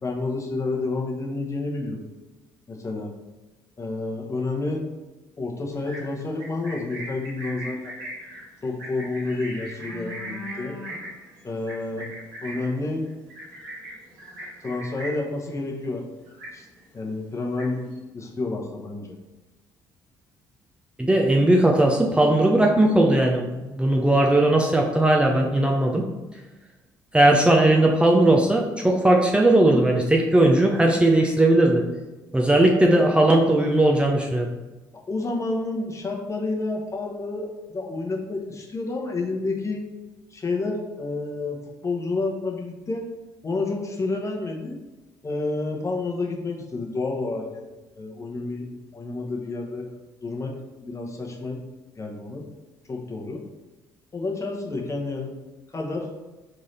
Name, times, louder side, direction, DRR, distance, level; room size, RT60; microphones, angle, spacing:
voice 1, 0.0-2.0 2.7-3.1 3.8-4.8 5.4-7.9 8.6-10.8 11.4-12.1 12.4-13.0 14.6-16.0 16.5-16.6 16.9-17.9 18.1-19.1 35.1-39.9 40.3-43.1 43.4-44.8 45.2-49.9 50.2-50.5 50.8-51.6 52.0-52.4 52.9-53.4 54.1-55.3 55.7-56.1, left 3 dB, 30° left, 0 dB, 1.0 m, -29 dB
Livestock farm animals working animals, 5.7-15.4 15.7-16.0 16.3-16.9 17.3-18.0, right 1 dB, 85° right, 1.4 m, -39 dB
voice 2, 21.0-23.5 23.7-26.0 27.1-31.8 32.3-34.5, right 1 dB, 10° right, 0 dB, 0.6 m, -18 dB
3.7 x 3.3 x 4.2 m, 1.1 s
hypercardioid pair, 55°, 10 cm